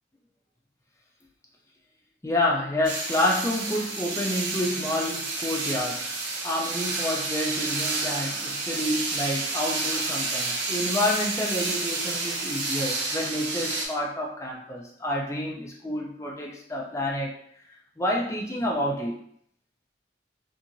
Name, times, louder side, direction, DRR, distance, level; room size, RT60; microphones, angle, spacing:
voice 1, 2.2-6.1 6.4-17.3 18.0-19.2, left 1 dB, 15° left, -2 dB, 0.4 m, -29 dB
sound 1, 2.8-13.9, right 3 dB, 75° right, 0.5 m, -30 dB
2.7 x 2.5 x 2.5 m, 0.65 s
head